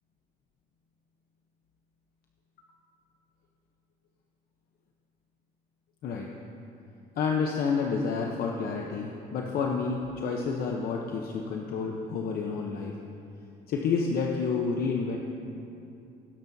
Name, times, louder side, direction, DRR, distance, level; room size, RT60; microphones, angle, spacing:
voice 1, 7.2-12.9 13.7-15.2, left 5 dB, 65° left, 1 dB, 0.9 m, -29 dB
19.0 x 10.5 x 2.8 m, 2.7 s
cardioid pair, 110°, 17 cm